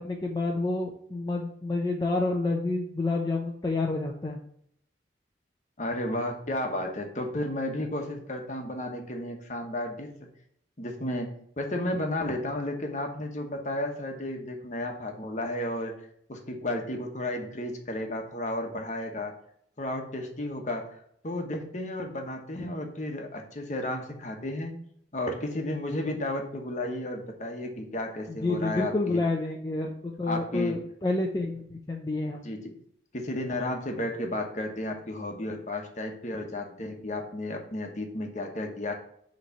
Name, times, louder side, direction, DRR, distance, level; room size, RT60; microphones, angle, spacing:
voice 1, 0.0-4.4 28.3-32.5, left 2 dB, 20° left, -1 dB, 0.6 m, -29 dB
voice 2, 5.8-10.1 10.8-15.9 16.3-19.4 19.8-20.9 21.2-24.7 25.1-29.2 30.2-30.8 32.4-32.7 33.1-38.9, left 1 dB, 40° left, 3 dB, 1.1 m, -33 dB
6.6 x 3.2 x 5.7 m, 0.68 s
head